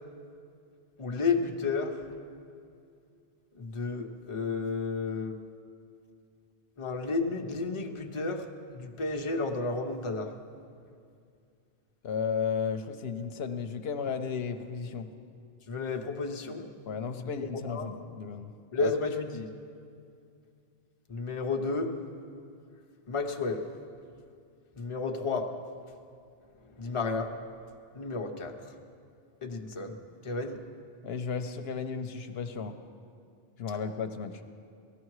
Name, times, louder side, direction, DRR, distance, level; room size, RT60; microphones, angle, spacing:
voice 1, 1.0-2.0 3.6-5.4 6.8-8.5 8.7-10.3 15.7-16.7 17.2-17.9 18.7-19.5 21.1-21.9 23.1-23.6 24.8-25.5 26.8-27.3 27.9-28.5 29.4-30.0 30.2-30.6, left 4 dB, 30° left, 3 dB, 0.9 m, -32 dB
voice 2, 12.0-15.1 16.9-18.5 18.8-18.9 31.0-32.8 33.6-34.3, left 6 dB, 80° left, 8 dB, 0.9 m, -34 dB
18.0 x 14.0 x 4.8 m, 2.4 s
omnidirectional pair, 1.0 m